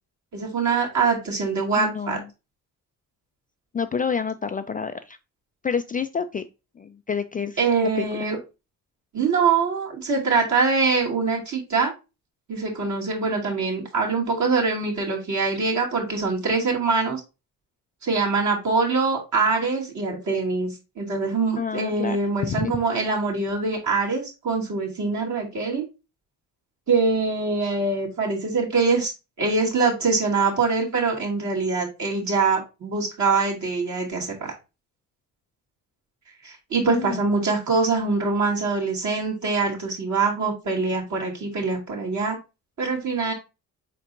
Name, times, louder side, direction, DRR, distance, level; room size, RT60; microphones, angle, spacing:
voice 1, 0.3-2.2 7.6-8.4 9.1-11.9 12.5-17.2 18.0-25.8 26.9-29.1 29.4-34.5 36.4-42.4 42.8-43.3, right 4 dB, 50° right, -2 dB, 2.2 m, -24 dB
voice 2, 1.8-2.2 3.7-5.2 5.6-6.4 6.8-7.6 8.0-8.1 21.6-22.2 22.5-22.8 36.9-37.2, left 6 dB, 25° left, 10 dB, 0.3 m, -28 dB
4.4 x 4.2 x 2.5 m, 0.27 s
supercardioid pair, 75°, 36 cm